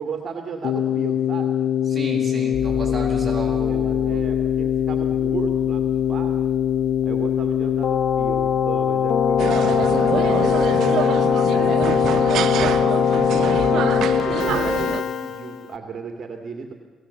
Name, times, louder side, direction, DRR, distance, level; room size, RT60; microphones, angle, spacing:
voice 1, 0.0-1.5 3.1-6.4 7.0-10.7 11.5-16.7, right 5 dB, 45° right, 4 dB, 2.2 m, -35 dB
Keyboard (musical), 0.6-15.7, left 8 dB, 65° left, 0.9 m, -21 dB
voice 2, 1.9-4.2, right 1 dB, 15° right, -2 dB, 7.7 m, -32 dB
sound 1, 2.5-13.2, left 2 dB, 35° left, 1.9 m, -38 dB
sound 2, 9.4-15.0, right 10 dB, 75° right, 0.8 m, -26 dB
24.0 x 17.0 x 7.2 m, 1.5 s
cardioid pair, 90°, 0 cm